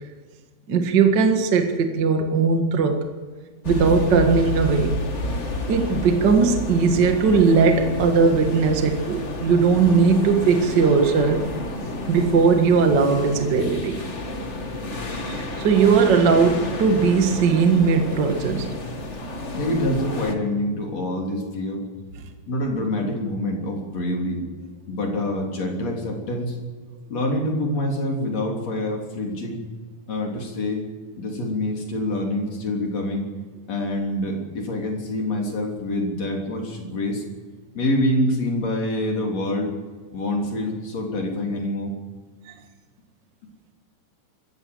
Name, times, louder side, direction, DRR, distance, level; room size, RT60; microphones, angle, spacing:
voice 1, 0.7-3.0 3.6-4.9 5.7-11.4 12.1-14.0 15.2-18.7, right 5 dB, 40° right, 5 dB, 1.6 m, -19 dB
sound 1, 3.6-20.3, left 1 dB, 85° left, 0.6 m, -30 dB
voice 2, 19.5-21.8 22.5-24.4 24.9-26.6 27.1-29.6 30.1-30.8 31.2-33.3 33.7-37.2 37.8-39.7 40.1-41.9, left 1 dB, 45° left, 0 dB, 4.2 m, -26 dB
24.5 x 14.0 x 7.9 m, 1.4 s
omnidirectional pair, 4.4 m